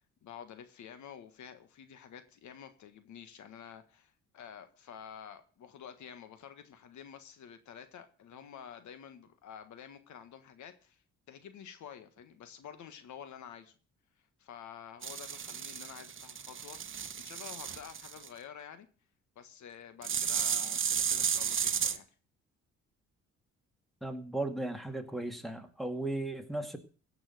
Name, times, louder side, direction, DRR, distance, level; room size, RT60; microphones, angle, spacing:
voice 1, 0.2-11.0 11.3-13.7 14.4-18.9 19.3-22.0, left 8 dB, 70° left, 10 dB, 1.7 m, -49 dB
sound 1, 15.0-18.3 20.0-22.0, right 7 dB, 40° right, 1.1 m, -33 dB
voice 2, 24.0-26.8, right 2 dB, ahead, 7 dB, 2.2 m, -36 dB
16.0 x 6.1 x 7.8 m, 0.38 s
cardioid pair, 90°, 30 cm